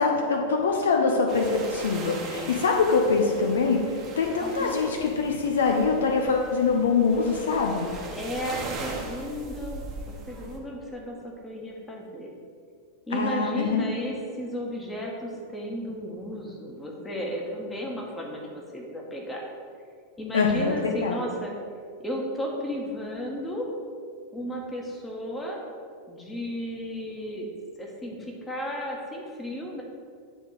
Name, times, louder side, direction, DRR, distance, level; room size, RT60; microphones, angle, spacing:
voice 1, 0.0-7.9 13.1-13.9 20.3-21.2, left 4 dB, 65° left, 2 dB, 0.6 m, -24 dB
sound 1, 1.3-10.6, right 3 dB, 30° right, 1.2 m, -39 dB
voice 2, 4.4-4.7 5.0-5.1 8.1-12.3 13.1-19.4 20.2-21.5 22.0-23.6 24.3-25.6 26.1-27.5 27.8-29.8, equal, 15° left, -1 dB, 1.4 m, -34 dB
9.4 x 3.7 x 4.8 m, 2.2 s
figure-of-eight pair, 90°, 0 cm